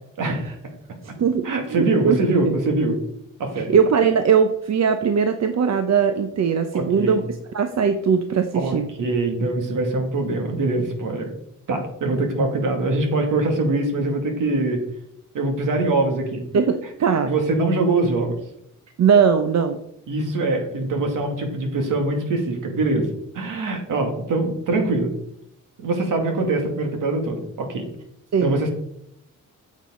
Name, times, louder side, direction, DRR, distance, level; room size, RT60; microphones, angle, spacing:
voice 1, 0.2-0.6 1.4-3.0 3.4-3.7 6.7-7.2 8.5-11.3 11.7-14.8 15.3-16.4 17.1-18.4 20.1-23.1 23.3-25.1 25.8-27.9 28.4-28.7, right 2 dB, 70° right, 3 dB, 2.3 m, -23 dB
voice 2, 1.2-2.2 2.4-2.5 3.7-7.2 7.5-8.9 16.5-17.3 19.0-19.8 28.3-28.6, right 6 dB, 50° right, 8 dB, 0.8 m, -20 dB
9.1 x 7.5 x 3.8 m, 0.75 s
cardioid pair, 75°, 33 cm